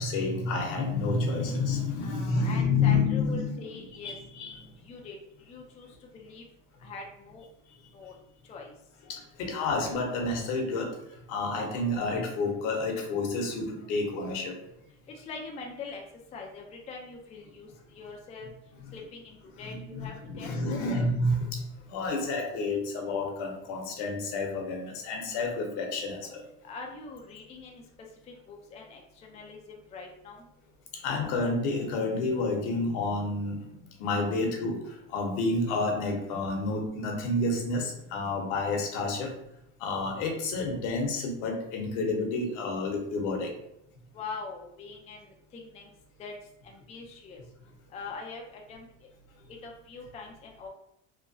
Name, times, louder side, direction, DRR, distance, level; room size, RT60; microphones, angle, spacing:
voice 1, 0.0-3.6 4.0-4.7 9.1-11.0 11.3-14.6 19.6-26.4 30.9-33.6 34.0-39.3 39.8-43.5, left 3 dB, 70° left, 2 dB, 0.9 m, -29 dB
voice 2, 2.0-4.1 4.8-5.2 5.4-6.4 6.8-7.4 7.9-8.1 8.5-8.7 15.2-16.0 16.3-18.5 18.9-21.1 26.6-27.8 28.5-30.5 44.1-45.9 46.2-46.3 46.6-47.4 47.9-48.9 49.6-50.7, left 4 dB, 20° left, 0 dB, 0.3 m, -43 dB
3.0 x 2.2 x 2.6 m, 0.79 s
supercardioid pair, 115°, 37 cm